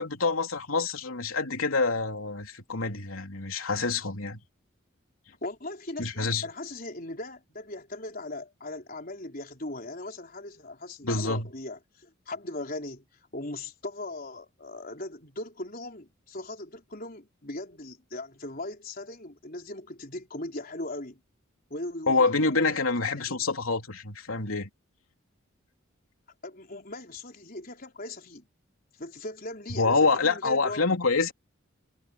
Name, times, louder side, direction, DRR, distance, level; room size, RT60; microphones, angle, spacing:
voice 1, 0.0-4.4 6.0-6.4 11.0-11.5 22.1-24.7 29.7-31.3, left 3 dB, 80° left, 3.3 m, -26 dB
voice 2, 5.4-13.1 13.3-21.2 21.7-23.4 26.4-28.5 28.9-31.0, left 2 dB, 45° left, 4.3 m, -39 dB
head